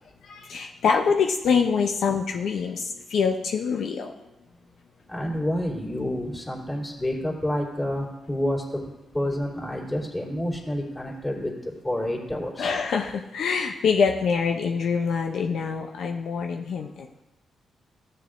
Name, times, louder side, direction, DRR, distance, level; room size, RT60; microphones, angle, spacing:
voice 1, 0.2-4.1 12.6-17.2, left 6 dB, 75° left, 3 dB, 0.5 m, -25 dB
voice 2, 5.1-8.9 9.1-12.7, left 1 dB, 20° left, -5 dB, 2.9 m, -29 dB
14.0 x 6.6 x 2.5 m, 0.97 s
cardioid pair, 70°, 0 cm